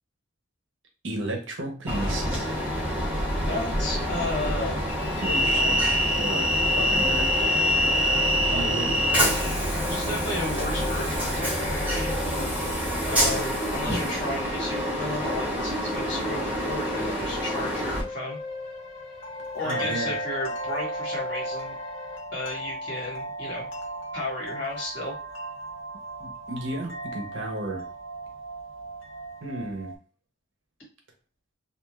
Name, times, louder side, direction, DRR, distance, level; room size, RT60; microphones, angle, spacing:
voice 1, 1.0-2.6 5.2-5.9 6.1-6.5 6.7-7.3 8.5-9.5 19.6-20.1 26.2-27.8 29.4-29.9, right 1 dB, 65° right, 2 dB, 0.8 m, -33 dB
Train, 1.9-18.0, equal, 5° right, 0.7 m, -26 dB
voice 2, 3.4-4.8 9.9-12.1 13.0-18.4 19.5-21.8 22.3-23.7 24.1-25.1, left 1 dB, 55° left, -3 dB, 1.5 m, -33 dB
sound 1, 5.8-22.2, left 3 dB, 30° left, 0.8 m, -40 dB
sound 2, 18.3-30.0, right 1 dB, 70° left, 0.6 m, -36 dB
2.4 x 2.4 x 3.1 m, 0.35 s
head